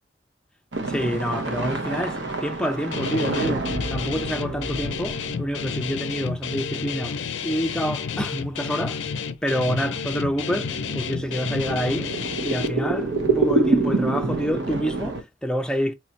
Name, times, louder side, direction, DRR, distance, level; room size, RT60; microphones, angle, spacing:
sound 1, 0.7-6.6 7.1-7.2 7.9-8.0 9.7-15.2, right 2 dB, 75° right, 0.9 m, -27 dB
voice 1, 0.9-9.0 9.4-15.9, equal, 5° left, 0.4 m, -28 dB
Guitar, 2.9-12.7, left 6 dB, 80° left, 0.5 m, -30 dB
3.2 x 2.6 x 4.3 m
head